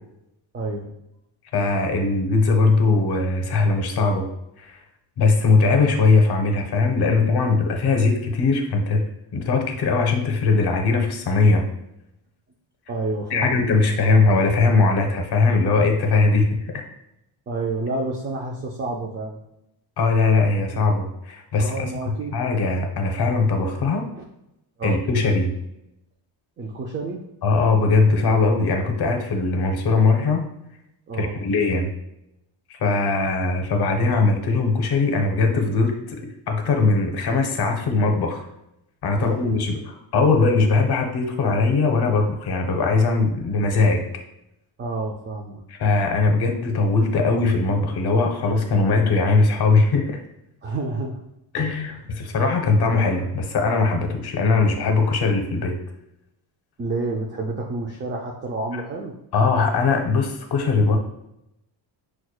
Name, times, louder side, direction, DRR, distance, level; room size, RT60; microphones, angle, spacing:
voice 1, 0.5-0.9 12.9-13.6 17.5-19.4 21.6-22.4 24.1-24.2 24.8-25.0 26.6-27.2 31.1-31.4 39.1-39.6 44.8-45.6 50.6-51.2 56.8-59.2, right 3 dB, 25° right, 0 dB, 0.4 m, -29 dB
voice 2, 1.5-4.3 4.6-4.8 5.2-9.0 9.3-11.6 13.3-16.8 20.0-24.1 24.8-25.5 27.4-30.4 31.2-31.9 32.7-36.2 36.5-38.4 39.0-44.0 45.7-50.2 51.5-55.8 59.3-61.0, left 3 dB, 55° left, 4 dB, 0.8 m, -20 dB
5.9 x 2.3 x 2.3 m, 0.84 s
cardioid pair, 115°, 47 cm